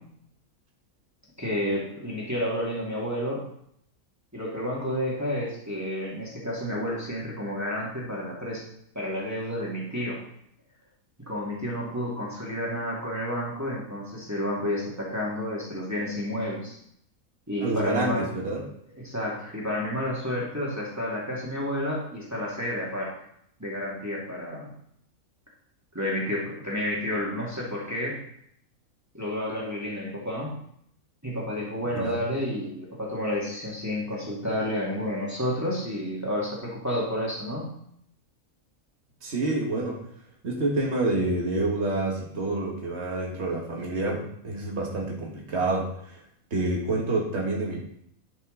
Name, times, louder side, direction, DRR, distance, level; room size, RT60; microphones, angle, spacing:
voice 1, 1.4-3.4 4.3-8.6 8.9-10.2 11.3-16.8 17.5-18.3 19.0-23.1 23.6-24.7 25.9-28.2 29.1-30.5 31.2-37.7, left 1 dB, 10° right, -5 dB, 2.1 m, -30 dB
voice 2, 17.6-18.6 31.9-32.2 39.2-40.0 40.4-46.2 46.5-47.8, right 2 dB, 50° right, -1 dB, 1.9 m, -28 dB
11.0 x 5.6 x 3.9 m, 0.70 s
omnidirectional pair, 1.5 m